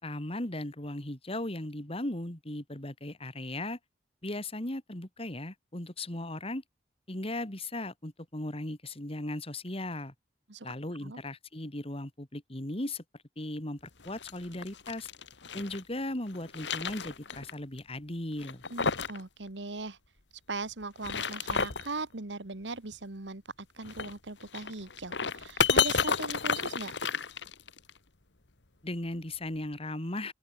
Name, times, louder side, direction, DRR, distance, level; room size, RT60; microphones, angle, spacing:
voice 1, 0.0-3.8 4.2-6.6 7.1-10.1 10.6-13.0 13.4-15.1 15.5-18.6 28.8-30.3, left 1 dB, 35° left, 2.7 m, -37 dB
sound 1, 14.0-15.8 16.3-17.5 17.8-17.9 18.4-19.2 19.5-19.6 20.8-21.9 23.8-27.9, left 5 dB, 75° left, 1.9 m, -31 dB
voice 2, 18.7-20.0 20.5-26.9, right 3 dB, 80° right, 1.8 m, -39 dB
open air
head